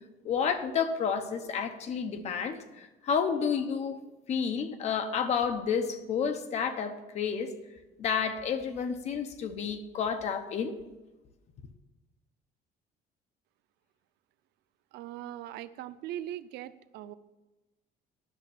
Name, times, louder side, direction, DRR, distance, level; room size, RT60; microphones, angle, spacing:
voice 1, 0.2-4.0 4.3-7.5 8.0-10.7, left 6 dB, 40° left, 8 dB, 0.9 m, -30 dB
voice 2, 14.9-17.1, right 12 dB, 80° right, 13 dB, 0.6 m, -40 dB
10.5 x 6.5 x 7.1 m, 1.1 s
cardioid pair, 175°, 17 cm